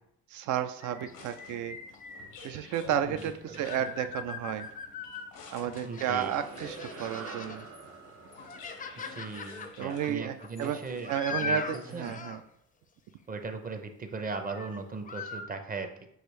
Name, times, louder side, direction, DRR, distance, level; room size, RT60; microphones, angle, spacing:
voice 1, 0.3-1.8 2.4-4.7 5.5-7.7 9.8-10.8 11.1-12.4, right 10 dB, 80° right, 10 dB, 0.5 m, -32 dB
sound 1, 0.8-2.3 3.3-5.3 5.6-7.6 8.1-12.4 14.5-14.8 15.0-15.4, left 4 dB, 30° left, 0.4 m, -40 dB
sound 2, 1.1-12.4, left 4 dB, 90° left, 0.9 m, -50 dB
voice 2, 2.9-3.9 5.8-6.4 9.0-12.2 13.3-16.1, right 4 dB, 30° right, 6 dB, 0.6 m, -39 dB
sound 3, 5.7-10.4, right 5 dB, 55° right, 1.0 m, -47 dB
6.4 x 2.6 x 3.1 m, 0.74 s
cardioid pair, 90°, 30 cm